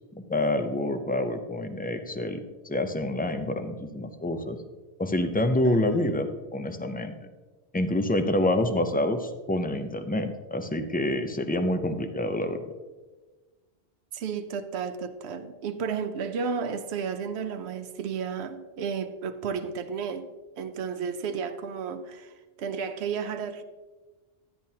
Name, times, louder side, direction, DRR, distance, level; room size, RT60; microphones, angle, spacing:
voice 1, 0.1-4.6 5.0-7.3 7.7-12.7, left 1 dB, 15° left, 0.3 m, -27 dB
voice 2, 5.6-6.1 14.1-20.3 20.6-22.3 22.6-23.6, right 6 dB, 80° right, 0.9 m, -32 dB
11.0 x 10.5 x 2.8 m
omnidirectional pair, 1.1 m